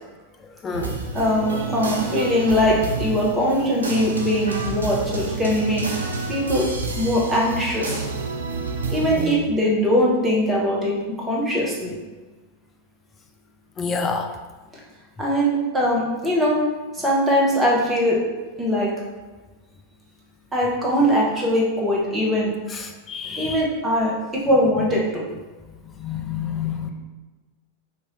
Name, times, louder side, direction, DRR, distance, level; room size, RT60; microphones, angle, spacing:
voice 1, 0.4-1.0 13.8-14.4 22.7-23.7 25.8-26.9, left 5 dB, 20° left, 4 dB, 0.4 m, -29 dB
sound 1, 0.7-9.3, right 3 dB, 75° right, 0.5 m, -29 dB
voice 2, 1.1-5.9 6.3-6.7 7.0-8.0 8.9-11.9 15.2-16.6 16.9-18.2 18.6-18.9 20.5-22.5 23.4-25.2, equal, 10° right, -4 dB, 1.0 m, -21 dB
3.0 x 2.6 x 4.0 m, 1.2 s
figure-of-eight pair, 90°, 0 cm